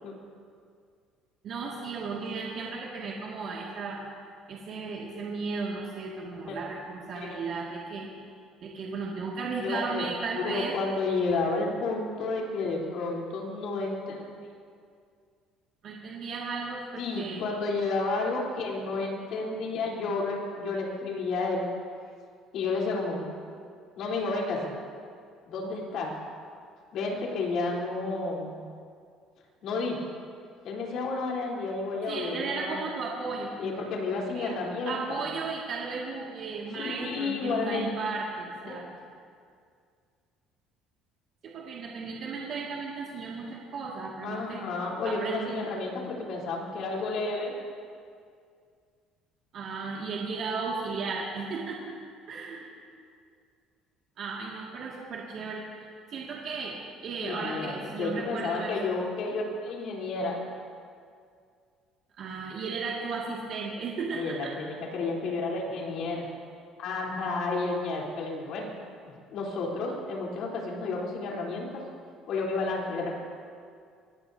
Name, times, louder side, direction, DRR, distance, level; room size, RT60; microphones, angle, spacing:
voice 1, 1.4-4.0 4.5-8.1 8.6-10.8 15.8-17.4 32.1-33.8 34.3-34.6 34.9-38.9 41.4-44.6 45.0-45.7 49.5-52.0 52.3-52.7 54.2-58.8 62.2-64.5, right 4 dB, 45° right, -3 dB, 2.1 m, -35 dB
voice 2, 9.6-10.1 10.3-14.4 17.0-21.7 22.5-23.3 24.0-24.7 25.5-26.1 26.9-28.6 29.6-30.0 30.6-32.8 33.6-35.2 36.7-37.9 38.7-38.8 44.2-47.5 57.2-60.4 64.1-66.3 66.8-68.7 69.3-71.8 72.3-73.1, left 3 dB, 60° left, -2 dB, 3.6 m, -31 dB
23.5 x 18.0 x 2.8 m, 2.2 s
cardioid pair, 150°, 0 cm